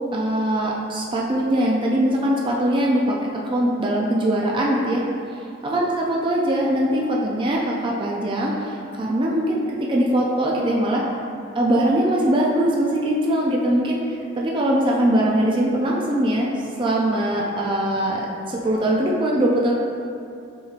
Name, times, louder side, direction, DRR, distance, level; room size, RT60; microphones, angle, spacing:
voice 1, 0.1-3.2 3.4-5.0 5.6-11.0 11.6-14.0 14.3-19.7, right 1 dB, 25° right, -3 dB, 0.3 m, -21 dB
6.3 x 3.0 x 2.4 m, 2.5 s
head